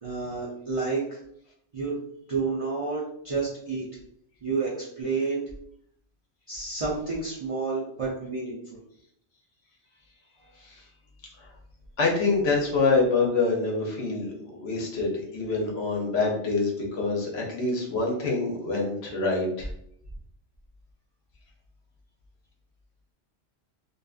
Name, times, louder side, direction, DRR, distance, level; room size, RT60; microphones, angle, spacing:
voice 1, 0.0-1.2 1.7-2.0 2.3-3.9 4.4-5.4 6.5-8.8, right 4 dB, 45° right, -6 dB, 0.4 m, -30 dB
voice 2, 12.0-19.7, left 3 dB, 70° left, -1 dB, 1.0 m, -26 dB
2.6 x 2.4 x 2.3 m, 0.71 s
omnidirectional pair, 1.2 m